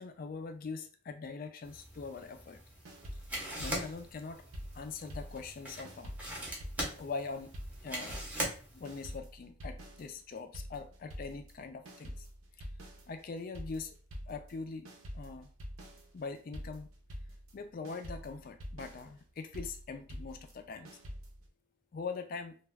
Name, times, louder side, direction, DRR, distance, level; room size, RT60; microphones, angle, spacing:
voice 1, 0.0-2.6 3.1-3.2 3.6-4.5 4.7-6.1 7.0-7.6 7.8-8.2 8.7-12.3 12.6-12.7 13.1-14.0 14.3-15.5 16.1-16.9 17.5-21.0 21.9-22.6, left 4 dB, 45° left, 6 dB, 0.3 m, -42 dB
sound 1, 1.6-9.2, equal, 5° right, 0.6 m, -42 dB
sound 2, 2.8-5.6 5.8-21.5, equal, 90° right, 0.6 m, -46 dB
2.3 x 2.2 x 3.3 m, 0.42 s
head